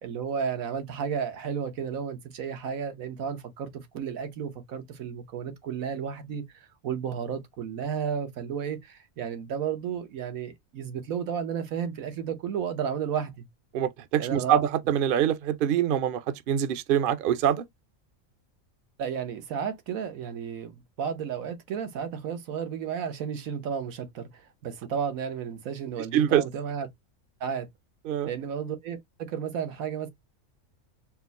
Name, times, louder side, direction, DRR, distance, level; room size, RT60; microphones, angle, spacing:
voice 1, 0.0-6.4 6.8-13.5 14.2-14.6 19.0-26.9 27.4-27.7 28.2-30.1, right 7 dB, 90° right, 1.3 m, -33 dB
voice 2, 13.7-17.6 26.1-26.4 28.1-28.3, right 10 dB, 55° right, 0.6 m, -24 dB
4.4 x 2.1 x 4.0 m
omnidirectional pair, 1.4 m